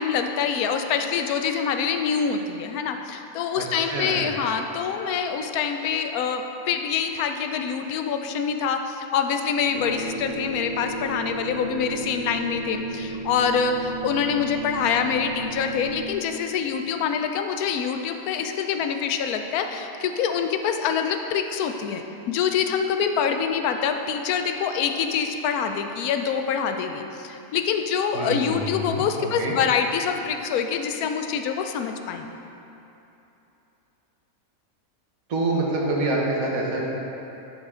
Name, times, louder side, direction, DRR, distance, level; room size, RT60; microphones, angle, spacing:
voice 1, 0.0-32.3, left 7 dB, 85° left, 6 dB, 1.1 m, -25 dB
voice 2, 3.9-4.3 28.1-29.5 35.3-36.9, right 2 dB, 70° right, -3 dB, 1.6 m, -26 dB
sound 1, 9.7-16.1, right 3 dB, 50° left, 0.7 m, -33 dB
11.0 x 4.9 x 3.7 m, 2.9 s
omnidirectional pair, 1.5 m